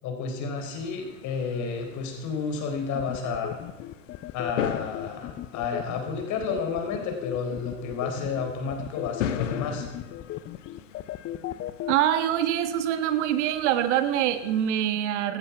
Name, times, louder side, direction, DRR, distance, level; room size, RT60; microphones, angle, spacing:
voice 1, 0.0-3.6 4.3-9.9, left 5 dB, 50° left, 4 dB, 4.0 m, -31 dB
sound 1, 0.6-14.7, left 9 dB, 75° left, 1.1 m, -39 dB
sound 2, 2.9-11.9, left 13 dB, 35° left, 0.6 m, -36 dB
voice 2, 11.9-15.4, right 11 dB, 65° right, 11 dB, 1.4 m, -24 dB
16.0 x 13.0 x 5.7 m, 1.1 s
hypercardioid pair, 85°, 38 cm